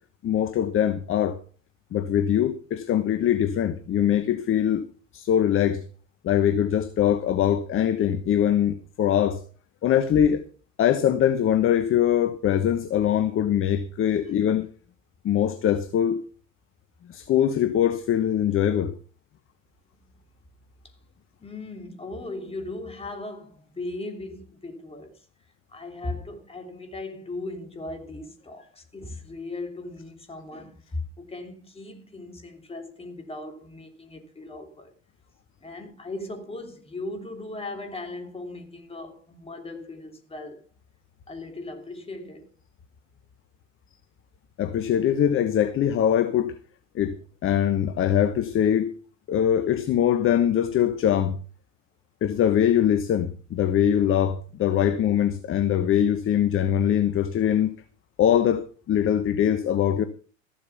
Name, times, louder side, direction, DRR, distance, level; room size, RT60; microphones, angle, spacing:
voice 1, 0.2-1.4 1.9-4.8 5.1-5.8 6.2-9.4 9.8-10.4 10.8-14.7 15.2-16.2 17.1-19.0 44.6-46.5 46.9-47.2 47.4-48.9 49.3-51.4 52.2-57.7 58.2-60.0, left 10 dB, 35° left, 1.1 m, -22 dB
voice 2, 21.4-25.2 25.7-34.9 35.6-40.6 41.3-42.5, left 2 dB, 15° left, 3.1 m, -38 dB
14.0 x 7.6 x 5.8 m
hypercardioid pair, 85°, 38 cm